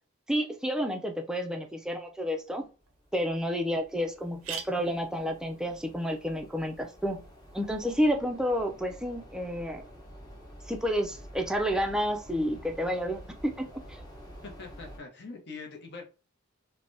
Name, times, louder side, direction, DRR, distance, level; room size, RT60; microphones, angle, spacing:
voice 1, 0.3-2.7 3.1-7.2 7.5-9.8 10.7-14.0, equal, 5° right, 3 dB, 0.4 m, -30 dB
sound 1, 2.6-15.0, equal, 20° left, 0.9 m, -49 dB
sound 2, 2.9-3.0 3.4-3.5 3.7-3.8 4.2-7.9, right 6 dB, 75° right, 0.5 m, -46 dB
voice 2, 14.4-16.0, left 4 dB, 55° left, 3 dB, 0.8 m, -43 dB
3.2 x 2.2 x 2.6 m, 0.33 s
head